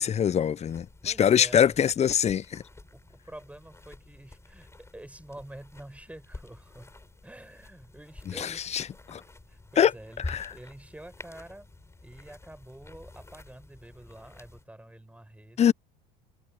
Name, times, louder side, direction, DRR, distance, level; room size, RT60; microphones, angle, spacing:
voice 1, 0.0-2.6 8.4-9.2 9.8-9.9 10.3-10.4 15.6-15.7, left 9 dB, 30° left, 1.0 m, -23 dB
sound 1, 0.7-14.7, left 2 dB, 15° left, 7.6 m, -48 dB
voice 2, 1.0-1.8 2.9-7.0 7.2-8.6 9.1-9.2 9.5-10.2 10.5-11.7 12.0-15.7, right 1 dB, 5° right, 7.7 m, -47 dB
hypercardioid pair, 70°, 21 cm